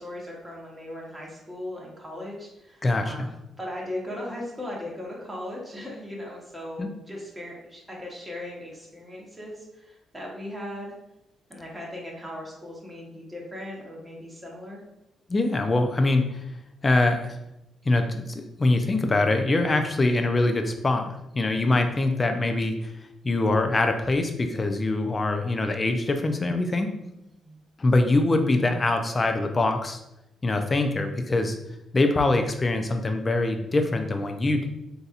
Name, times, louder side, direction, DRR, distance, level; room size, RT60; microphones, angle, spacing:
voice 1, 0.0-3.3 3.6-10.9 11.5-14.8 27.4-27.6, left 1 dB, 10° right, -4 dB, 1.0 m, -38 dB
voice 2, 2.8-3.3 6.8-6.9 15.3-16.4 16.8-17.4 17.9-22.9 23.2-26.9 27.8-30.0 30.4-31.6 31.9-34.7, left 2 dB, 25° left, 6 dB, 0.4 m, -23 dB
4.0 x 2.7 x 2.4 m, 0.87 s
cardioid pair, 90°, 0 cm